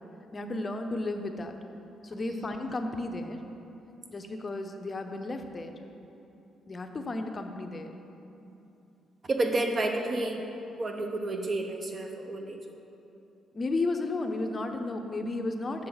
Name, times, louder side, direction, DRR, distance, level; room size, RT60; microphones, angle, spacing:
voice 1, 0.3-1.5 2.0-3.4 4.1-5.7 6.7-7.9 13.5-15.9, left 2 dB, 30° left, 5 dB, 0.6 m, -33 dB
voice 2, 9.2-10.4 10.8-12.6, right 2 dB, 35° right, 4 dB, 0.8 m, -30 dB
7.5 x 6.2 x 3.9 m, 2.9 s
cardioid pair, 90°, 0 cm